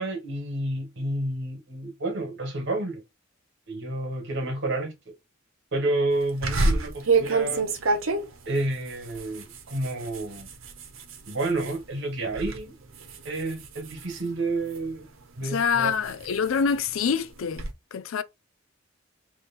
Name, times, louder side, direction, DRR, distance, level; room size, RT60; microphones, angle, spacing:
voice 1, 0.0-3.0 3.7-5.1 5.7-7.6 8.5-10.5 11.3-12.7 13.3-15.1 15.4-15.9, right 2 dB, 60° right, 1.6 m, -30 dB
sound 1, 6.4-11.8 12.2-12.6 12.9-15.0 15.5-17.7, right 3 dB, 90° right, 1.0 m, -28 dB
voice 2, 15.4-18.2, left 6 dB, 75° left, 0.4 m, -26 dB
3.3 x 3.0 x 4.3 m
head